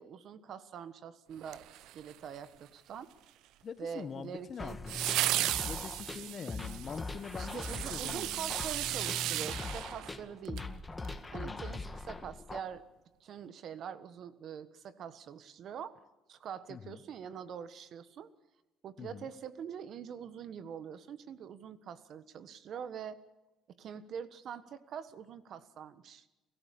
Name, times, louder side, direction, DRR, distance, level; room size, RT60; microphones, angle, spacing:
voice 1, 0.0-3.1 3.8-4.8 7.3-10.6 11.3-12.8 13.2-16.0 16.3-18.3 18.8-23.2 23.8-26.3, right 8 dB, 60° right, 13 dB, 1.4 m, -44 dB
sound 1, 1.4-2.4 4.9-10.7 11.0-11.1, right 14 dB, 80° right, 0.7 m, -35 dB
voice 2, 3.6-5.1 5.7-8.6 11.3-11.7 16.7-17.0 19.0-19.3, left 6 dB, 45° left, 14 dB, 1.2 m, -44 dB
sound 2, 4.6-12.6, left 3 dB, 20° left, 1.9 m, -41 dB
30.0 x 14.0 x 8.5 m, 1.0 s
supercardioid pair, 75°, 0 cm